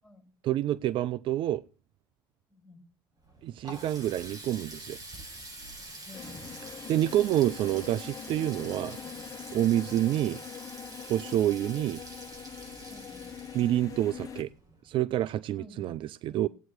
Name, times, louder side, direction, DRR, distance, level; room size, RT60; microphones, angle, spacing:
voice 1, 0.4-1.6 3.4-5.0 6.9-9.0 9.5-10.4 11.1-12.0 13.5-14.5 14.8-16.5, right 13 dB, 55° right, 0.5 m, -28 dB
voice 2, 2.5-2.8 6.0-6.5 12.9-13.3 15.6-15.9 16.3-16.5, left 1 dB, 5° left, 7.5 m, -52 dB
Water tap faucet, 3.2-14.9, right 2 dB, 35° right, 7.5 m, -46 dB
sound 1, 6.1-14.4, left 8 dB, 30° left, 1.5 m, -43 dB
16.0 x 9.3 x 4.4 m
hypercardioid pair, 70°, 11 cm